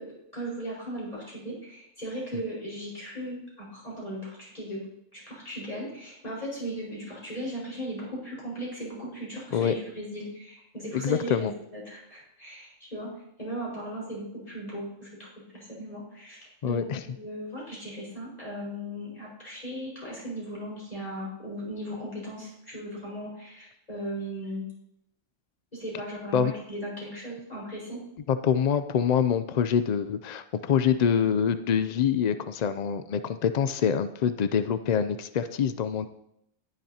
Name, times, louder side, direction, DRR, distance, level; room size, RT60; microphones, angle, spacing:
voice 1, 0.0-4.8 5.1-13.1 13.4-15.3 15.5-24.6 25.7-28.0, equal, 30° left, -6 dB, 5.3 m, -37 dB
voice 2, 10.9-11.5 16.6-17.0 26.3-26.5 28.3-36.1, left 7 dB, 75° left, 11 dB, 0.3 m, -25 dB
19.5 x 7.4 x 2.8 m, 0.77 s
omnidirectional pair, 1.3 m